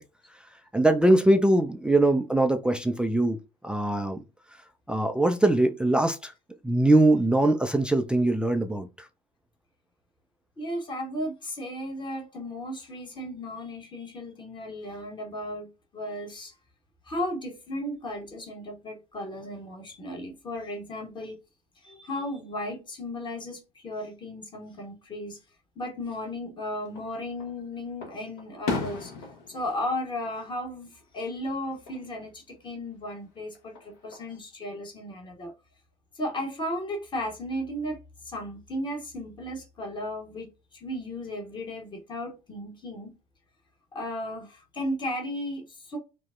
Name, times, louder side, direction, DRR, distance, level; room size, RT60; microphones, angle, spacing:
voice 1, 0.7-3.4 3.6-4.2 4.9-6.3 6.6-9.1, right 1 dB, 5° right, 0.3 m, -22 dB
voice 2, 10.6-16.6 17.0-21.4 21.8-25.4 25.8-35.5 36.1-38.0 38.2-43.1 43.9-46.0, left 1 dB, 20° left, 1.1 m, -35 dB
Fireworks, 26.8-27.5 28.0-31.1 31.4-32.0 33.5-34.4, left 4 dB, 55° left, 0.9 m, -36 dB
4.9 x 2.0 x 2.4 m
figure-of-eight pair, 60°, 21 cm